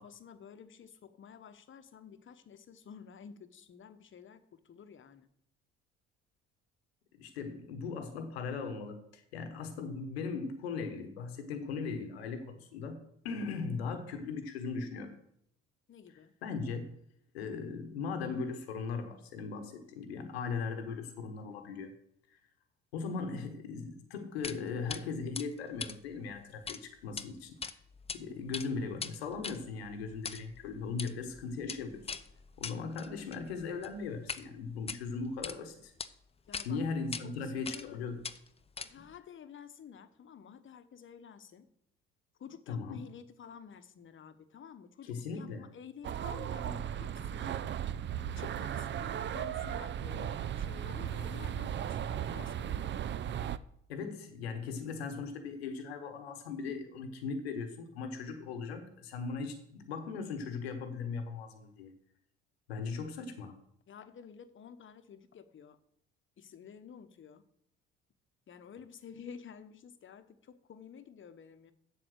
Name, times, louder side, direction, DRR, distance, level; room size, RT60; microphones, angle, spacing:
voice 1, 0.0-5.3 15.9-16.3 28.2-28.5 31.0-31.5 36.5-36.8 37.2-38.0 38.8-41.7 42.4-47.6 48.3-53.0 63.9-65.8 66.4-67.5 68.5-71.7, left 7 dB, 40° left, 11 dB, 1.0 m, -51 dB
voice 2, 7.1-13.0 13.2-15.1 16.4-16.9 17.3-21.9 22.3-22.4 22.9-27.6 28.1-32.0 32.6-35.9 36.6-38.2 42.7-43.0 45.0-45.7 53.9-61.9 62.7-63.6, left 4 dB, 85° left, 8 dB, 1.1 m, -38 dB
sound 1, 24.4-24.6 24.9-25.0 25.3-26.8 27.1-27.2 27.6-28.2 28.4-34.4 34.8-35.6 36.0-36.1 36.5-36.7 37.1-37.2 37.6-37.9 38.2-39.2, left 5 dB, 20° left, 0.6 m, -41 dB
sound 2, 46.0-53.6, right 10 dB, 40° right, 0.5 m, -36 dB
7.8 x 7.1 x 6.3 m, 0.72 s
hypercardioid pair, 60°, 30 cm